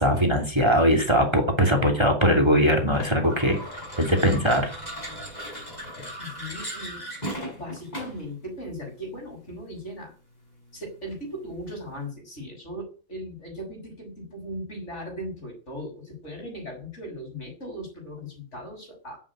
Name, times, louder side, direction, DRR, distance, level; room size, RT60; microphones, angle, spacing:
voice 1, 0.0-3.6 4.0-4.8, equal, 20° right, 4 dB, 2.8 m, -21 dB
sound 1, 2.9-8.3, equal, 30° left, 6.2 m, -37 dB
voice 2, 6.2-7.0 7.5-10.1 10.7-19.2, equal, 55° left, 3 dB, 7.2 m, -38 dB
11.0 x 9.7 x 8.9 m, 0.36 s
omnidirectional pair, 1.5 m